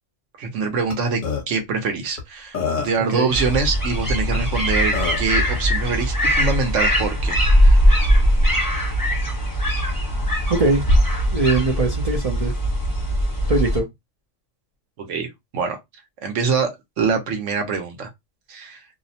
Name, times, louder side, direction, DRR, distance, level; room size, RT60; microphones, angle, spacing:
voice 1, 0.4-1.2 1.5-8.0 15.0-15.3 15.5-15.8 16.2-16.7 17.0-18.1 18.5-18.8, right 5 dB, 80° right, 1.1 m, -24 dB
Burping eructation, 0.9-1.0 1.2-1.4 2.2-2.3 2.5-3.1 4.4-4.5 4.9-5.3, left 5 dB, 45° left, 1.0 m, -25 dB
sound 1, 3.3-13.8, equal, 20° left, 0.9 m, -20 dB
voice 2, 10.5-10.9 11.3-12.5 13.5-13.8, right 2 dB, 50° right, 0.4 m, -21 dB
2.6 x 2.0 x 2.7 m
omnidirectional pair, 1.3 m